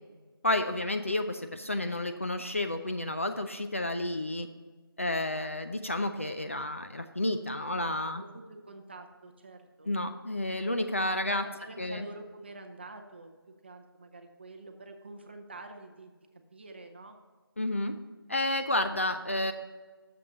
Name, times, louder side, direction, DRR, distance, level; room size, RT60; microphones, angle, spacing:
voice 1, 0.4-4.5 5.0-8.2 9.9-11.4 11.8-12.0 17.6-18.0 18.3-19.5, left 1 dB, 35° left, 7 dB, 0.4 m, -31 dB
voice 2, 8.1-9.9 11.3-13.3 13.6-16.1 16.5-17.2, right 2 dB, 25° right, 5 dB, 0.6 m, -47 dB
7.0 x 5.5 x 6.6 m, 1.4 s
figure-of-eight pair, 170°, 13 cm